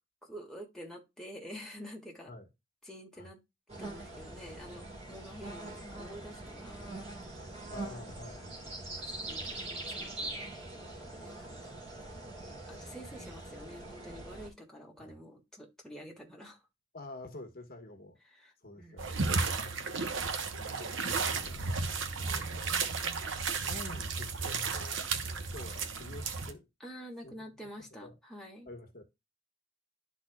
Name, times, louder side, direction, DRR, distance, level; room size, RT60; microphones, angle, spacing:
voice 1, 0.2-2.3 2.8-3.4 3.8-6.8 9.0-10.3 11.1-11.8 12.7-16.6 18.2-18.5 18.8-19.0 26.8-28.7, equal, 5° left, 1.7 m, -48 dB
sound 1, 3.7-14.5, right 2 dB, 35° right, 3.1 m, -43 dB
voice 2, 7.7-9.0 10.9-11.2 15.0-15.2 16.9-18.2 18.6-19.5 20.5-21.7 22.2-23.1 23.6-26.7 27.2-28.1 28.6-29.0, left 2 dB, 50° left, 1.3 m, -49 dB
sound 2, 19.0-26.5, right 4 dB, 70° right, 1.0 m, -33 dB
12.0 x 4.1 x 2.3 m
head